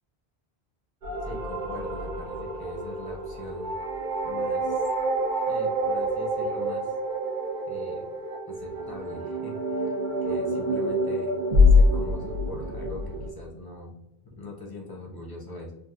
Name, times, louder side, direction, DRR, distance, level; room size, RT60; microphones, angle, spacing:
sound 1, 1.0-13.3, left 1 dB, 55° right, 0.7 m, -26 dB
voice 1, 1.2-3.7 4.2-4.8 5.5-6.9 7.7-8.0 8.5-9.9 10.2-14.0 14.3-15.7, left 2 dB, 25° left, -2 dB, 0.6 m, -42 dB
3.2 x 2.4 x 2.4 m, 0.87 s
omnidirectional pair, 1.1 m